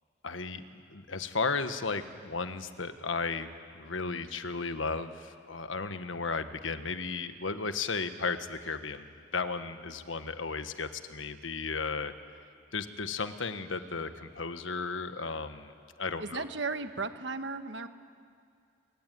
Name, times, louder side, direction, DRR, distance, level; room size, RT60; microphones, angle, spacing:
voice 1, 0.2-3.5 3.7-9.1 9.3-12.1 12.7-16.5, left 4 dB, 90° left, 10 dB, 1.4 m, -34 dB
voice 2, 16.2-17.9, right 4 dB, 65° right, 9 dB, 1.4 m, -35 dB
26.5 x 23.5 x 9.4 m, 2.3 s
head